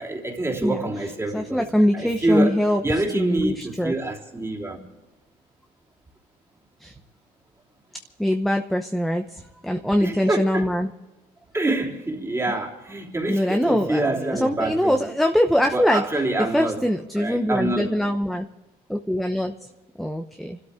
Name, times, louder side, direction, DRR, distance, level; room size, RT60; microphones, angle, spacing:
voice 1, 0.0-1.7 1.9-4.8 10.0-10.6 11.5-15.1 15.7-16.8 17.2-18.0, right 2 dB, 15° right, 3.1 m, -26 dB
voice 2, 1.3-2.8 3.1-3.9 6.8-6.9 8.2-10.9 13.3-16.0 16.5-18.5 18.9-19.7 20.0-20.6, equal, ahead, 0.8 m, -23 dB
28.0 x 13.0 x 3.7 m
cardioid pair, 110°, 17 cm